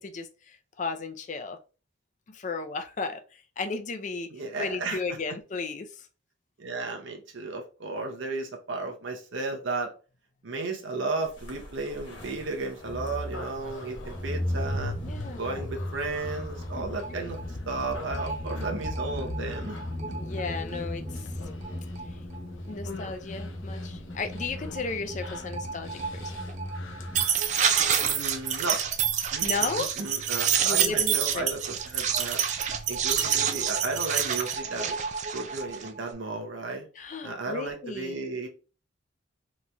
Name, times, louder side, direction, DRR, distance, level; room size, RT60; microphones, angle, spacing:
voice 1, 0.0-1.6 2.3-4.3 4.6-6.1 15.0-15.6 16.8-16.9 20.1-21.4 22.1-22.2 22.7-26.3 27.7-27.8 29.4-29.9 30.6-31.5 37.0-38.2, left 4 dB, 35° left, 7 dB, 0.4 m, -35 dB
voice 2, 4.3-5.2 6.6-9.9 10.4-15.0 15.3-19.8 20.1-20.2 28.0-28.8 29.3-29.5 30.0-32.4 32.9-35.0 35.3-36.9 37.2-38.5, right 3 dB, 70° right, 3 dB, 0.7 m, -34 dB
sound 1, 11.4-27.2, left 1 dB, 60° left, 1.1 m, -36 dB
Human voice, 13.3-28.5, left 3 dB, 85° left, 0.6 m, -48 dB
sound 2, 17.0-17.1 17.4-17.5 17.7-20.9 21.6-21.7 22.0-22.1 22.3-22.4 24.4-24.5 24.7-24.8 25.1-36.1, right 8 dB, 35° right, 0.3 m, -28 dB
3.9 x 3.0 x 2.2 m, 0.35 s
head